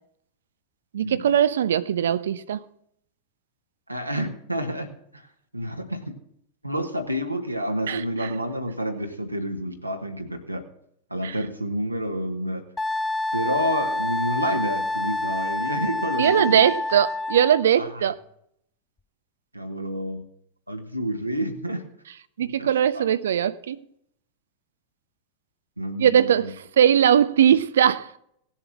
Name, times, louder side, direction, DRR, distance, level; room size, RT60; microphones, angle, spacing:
voice 1, 0.9-2.6 7.9-8.3 11.2-11.4 16.2-18.1 22.4-23.8 26.0-26.4 26.8-28.1, right 9 dB, 65° right, 0.5 m, -20 dB
voice 2, 3.9-5.3 5.5-6.2 6.6-10.7 11.1-12.6 13.3-16.7 17.8-18.1 19.5-20.2 20.7-21.8 22.4-23.0 25.8-26.5, equal, 90° right, 1.3 m, -29 dB
Wind instrument woodwind instrument, 12.8-17.6, left 2 dB, 10° left, 0.4 m, -27 dB
17.5 x 7.2 x 6.1 m
figure-of-eight pair, 90°, 0 cm